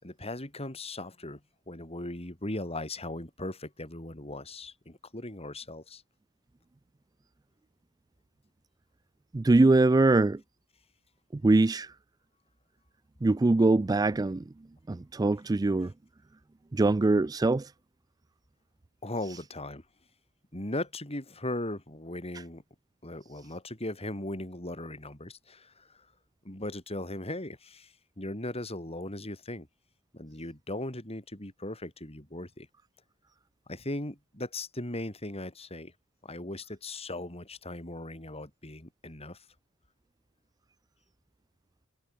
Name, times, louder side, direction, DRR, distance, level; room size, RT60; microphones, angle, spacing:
voice 1, 0.0-1.4 1.7-6.0 19.0-19.8 20.5-22.6 23.0-26.1 26.4-29.7 30.1-32.7 33.7-35.9 36.2-39.4, left 1 dB, 30° left, 5.3 m, -38 dB
voice 2, 9.3-10.4 11.3-11.9 13.2-14.4 14.9-15.9 16.7-17.7, right 2 dB, 15° right, 0.3 m, -23 dB
head